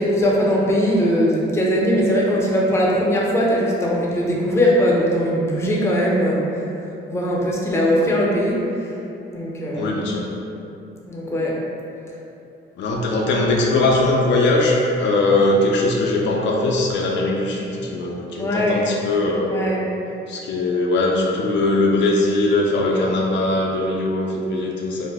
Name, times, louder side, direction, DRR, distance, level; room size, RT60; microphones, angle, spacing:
voice 1, 0.0-6.4 7.1-8.7 9.3-9.9 11.1-11.6 18.4-18.8 19.5-19.9, equal, 15° left, -4 dB, 0.5 m, -20 dB
voice 2, 9.8-10.3 12.8-19.5 20.3-25.1, left 2 dB, 65° left, -1 dB, 0.4 m, -20 dB
2.6 x 2.0 x 3.3 m, 2.7 s
cardioid pair, 90°, 20 cm